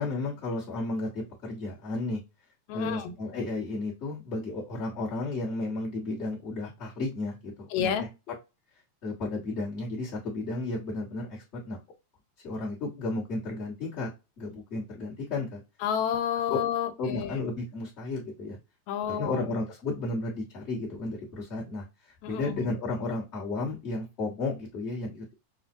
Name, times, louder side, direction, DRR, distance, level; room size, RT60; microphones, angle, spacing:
voice 1, 0.0-2.2 2.7-7.9 9.0-11.8 12.4-14.1 14.4-15.6 16.5-16.6 17.0-18.6 19.2-25.5, left 2 dB, 45° left, -8 dB, 0.9 m, -33 dB
voice 2, 2.7-3.1 7.7-8.1 15.8-17.5 18.9-19.5 22.2-22.7, left 9 dB, 85° left, 7 dB, 2.0 m, -30 dB
5.5 x 2.2 x 2.6 m, 0.27 s
omnidirectional pair, 3.3 m